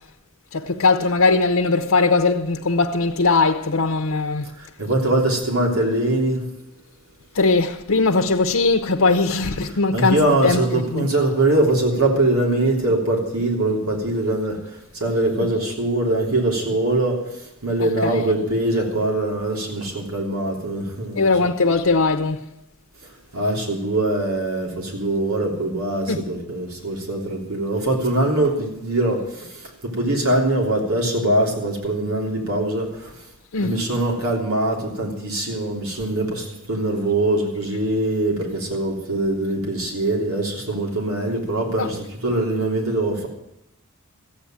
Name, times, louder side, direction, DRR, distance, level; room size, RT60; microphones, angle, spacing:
voice 1, 0.5-4.5 7.3-11.1 15.4-15.5 17.8-18.2 21.1-22.4 26.1-26.2 33.5-33.8 41.8-41.9, left 3 dB, 70° left, 0.8 m, -20 dB
voice 2, 4.8-6.5 9.9-14.6 15.0-17.2 17.6-21.3 23.3-29.2 29.8-32.9 33.6-43.3, right 2 dB, 85° right, 3.3 m, -22 dB
14.5 x 8.5 x 8.9 m
head